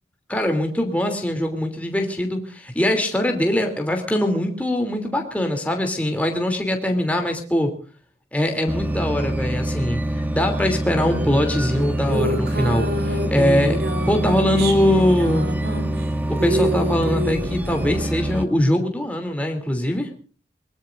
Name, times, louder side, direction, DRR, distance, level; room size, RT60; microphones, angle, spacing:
voice 1, 0.3-7.7 8.3-15.5 16.3-20.1, left 1 dB, 10° left, 3 dB, 2.9 m, -22 dB
sound 1, 8.7-18.4, right 1 dB, 10° right, 1.2 m, -25 dB
sound 2, 10.9-18.0, equal, 65° right, 3.5 m, -27 dB
23.5 x 22.0 x 2.5 m, 0.39 s
head